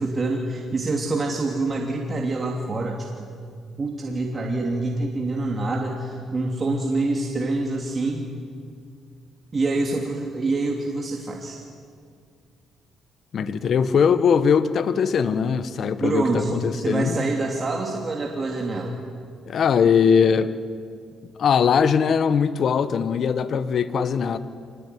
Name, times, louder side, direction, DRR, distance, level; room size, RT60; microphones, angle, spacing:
voice 1, 0.0-3.3 3.8-8.3 9.5-11.6 16.0-19.0, right 2 dB, 35° right, 1 dB, 3.0 m, -26 dB
voice 2, 13.3-17.2 19.5-20.5 21.4-24.4, left 6 dB, 60° left, 13 dB, 1.4 m, -20 dB
26.0 x 20.5 x 9.9 m, 2.2 s
cardioid pair, 90°, 0 cm